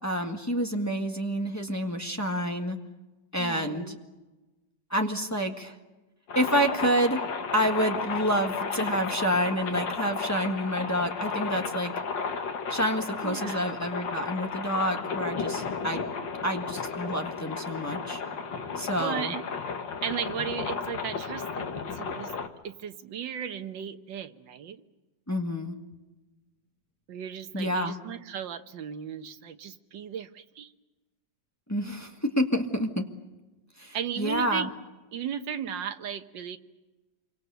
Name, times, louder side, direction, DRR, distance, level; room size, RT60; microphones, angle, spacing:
voice 1, 0.0-2.8 3.3-3.8 4.9-5.7 6.3-7.2 7.5-11.9 12.7-16.1 16.4-18.2 18.8-19.3 25.3-25.8 27.5-28.0 31.7-33.0 33.8-34.7, equal, 10° left, 3 dB, 1.5 m, -28 dB
voice 2, 3.4-4.0 13.2-13.6 19.0-19.4 20.0-22.3 22.6-24.8 27.1-30.7 33.9-34.7 35.1-36.6, right 8 dB, 85° right, 8 dB, 1.8 m, -35 dB
sound 1, 6.3-22.5, left 5 dB, 85° left, 2.3 m, -33 dB
27.0 x 24.5 x 6.9 m, 1.1 s
omnidirectional pair, 1.9 m